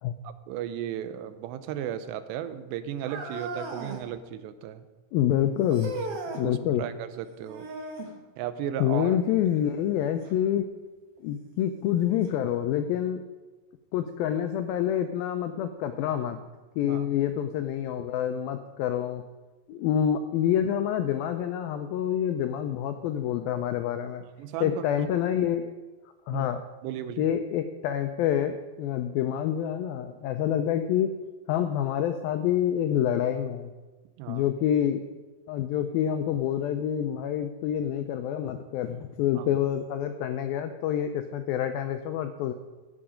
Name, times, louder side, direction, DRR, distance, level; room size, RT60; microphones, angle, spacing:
voice 1, 0.2-4.9 6.4-7.7 8.4-9.2 16.9-17.1 24.2-24.8 26.3-26.5 26.8-27.3 34.2-34.5 39.4-39.5, right 10 dB, 90° right, 12 dB, 2.9 m, -35 dB
sound 1, 3.0-4.1 5.7-6.5 7.5-8.2 10.2-10.3 11.2-11.3 12.2-12.3, right 3 dB, 60° right, 1.5 m, -36 dB
voice 2, 5.1-5.9 6.4-6.8 8.8-10.6 11.2-13.2 13.9-16.4 16.8-19.2 19.7-24.2 24.6-25.6 26.3-26.6 27.2-31.1 31.5-33.7 34.3-35.0 35.5-42.5, left 10 dB, 90° left, 8 dB, 2.1 m, -27 dB
16.0 x 7.7 x 5.0 m, 1.2 s
omnidirectional pair, 4.9 m